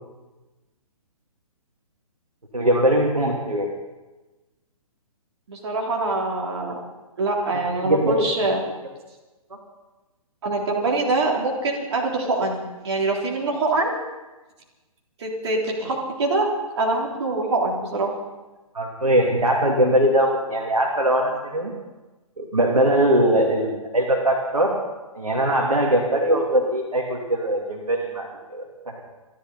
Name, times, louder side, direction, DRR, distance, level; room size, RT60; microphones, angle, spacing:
voice 1, 2.5-3.7 7.8-8.3 18.7-21.7 22.4-24.7 25.1-29.0, right 1 dB, 75° right, 0 dB, 3.0 m, -21 dB
voice 2, 5.5-6.7 7.2-8.6 10.4-14.0 15.2-16.5 16.8-18.1, right 2 dB, 45° right, -1 dB, 3.7 m, -24 dB
28.0 x 12.0 x 4.1 m, 1.1 s
figure-of-eight pair, 130°, 19 cm